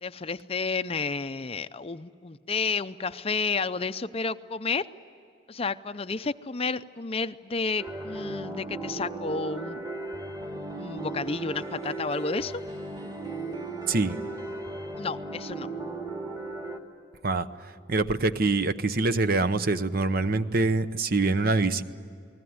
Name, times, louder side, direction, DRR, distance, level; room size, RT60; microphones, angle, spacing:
voice 1, 0.0-4.9 5.5-9.9 10.8-12.6 15.0-15.7, left 4 dB, 30° left, 12 dB, 0.5 m, -31 dB
tuesday morning ambience, 7.8-16.8, right 2 dB, 20° right, 2.3 m, -36 dB
voice 2, 13.9-14.2 17.2-17.5 17.9-21.8, right 3 dB, 50° right, 11 dB, 0.9 m, -25 dB
29.5 x 20.5 x 9.5 m, 2.5 s
head